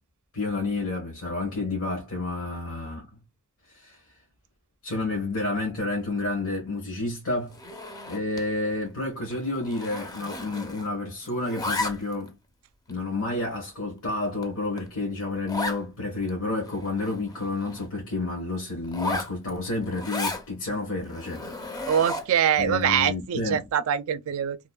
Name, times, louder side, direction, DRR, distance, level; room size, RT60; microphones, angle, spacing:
voice 1, 0.3-3.1 3.7-4.0 4.8-7.6 8.1-12.4 12.9-21.4 22.6-23.6, left 2 dB, 80° left, 1.2 m, -30 dB
Zipper (clothing), 7.5-8.5 8.8-9.0 9.3-11.0 11.3-12.3 12.9-13.0 13.6-13.7 14.1-14.2 14.4-14.5 14.8-14.9 15.5-15.8 16.3-16.4 16.6-17.9 18.8-20.4 21.0-22.4, left 2 dB, 20° left, 0.4 m, -34 dB
voice 2, 21.9-24.6, right 9 dB, 90° right, 0.3 m, -24 dB
3.0 x 2.2 x 2.2 m
head